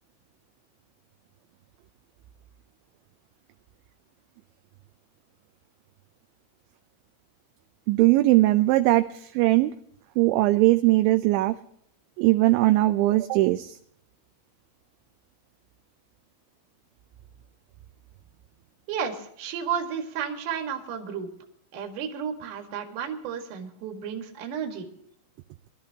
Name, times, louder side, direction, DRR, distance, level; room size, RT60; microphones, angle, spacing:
voice 1, 7.9-9.7 10.2-11.6 12.2-13.8, right 17 dB, 80° right, 8 dB, 2.8 m, -20 dB
voice 2, 18.9-21.3 21.7-24.9, right 7 dB, 55° right, 3 dB, 2.8 m, -32 dB
24.0 x 13.0 x 2.9 m, 0.67 s
omnidirectional pair, 5.7 m